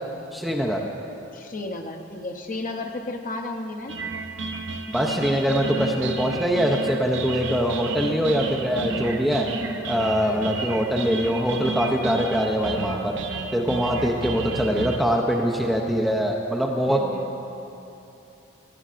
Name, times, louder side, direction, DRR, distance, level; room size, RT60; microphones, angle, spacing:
voice 1, 0.3-0.8 4.9-9.5 9.9-13.2 13.5-17.0, equal, ahead, -1 dB, 0.4 m, -23 dB
voice 2, 1.3-3.9 10.2-10.6 13.9-14.5 16.9-17.3, left 2 dB, 40° left, 3 dB, 0.6 m, -34 dB
sound 1, 3.9-15.0, right 4 dB, 60° right, 0.5 m, -32 dB
15.0 x 11.0 x 2.5 m, 2.9 s
head